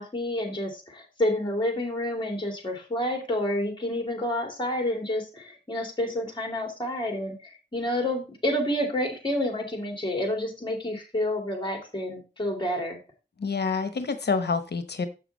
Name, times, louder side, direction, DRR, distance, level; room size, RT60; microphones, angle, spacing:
voice 1, 0.0-13.0, left 1 dB, 25° left, 3 dB, 2.5 m, -29 dB
voice 2, 13.4-15.1, left 5 dB, 70° left, 9 dB, 0.9 m, -27 dB
6.9 x 5.9 x 4.0 m, 0.30 s
wide cardioid pair, 70°, 18 cm